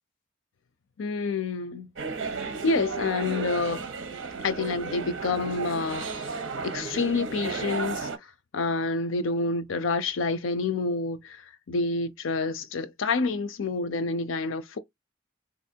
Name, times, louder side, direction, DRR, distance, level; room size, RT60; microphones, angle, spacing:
voice 1, 1.0-1.9 2.6-3.9 4.4-6.2 6.6-8.1 8.5-14.8, left 3 dB, 85° left, 0.5 m, -28 dB
sound 1, 2.0-8.2, right 4 dB, 80° right, 0.9 m, -34 dB
3.8 x 2.6 x 2.7 m
head